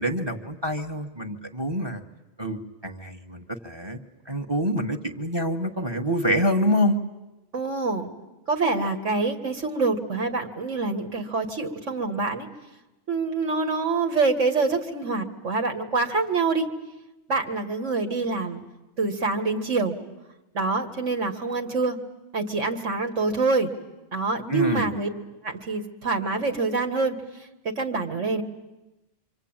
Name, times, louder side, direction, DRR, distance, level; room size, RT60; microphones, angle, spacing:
voice 1, 0.0-2.0 2.4-4.0 4.2-7.0 24.5-24.9, equal, 20° right, 7 dB, 1.4 m, -26 dB
voice 2, 7.5-8.1 8.5-12.5 13.1-16.7 17.3-18.6 19.0-20.0 20.5-22.0 22.3-23.7 24.1-25.1 25.4-27.2 27.6-28.4, right 3 dB, 65° right, 5 dB, 2.2 m, -26 dB
27.0 x 25.0 x 8.9 m, 1.0 s
omnidirectional pair, 1.3 m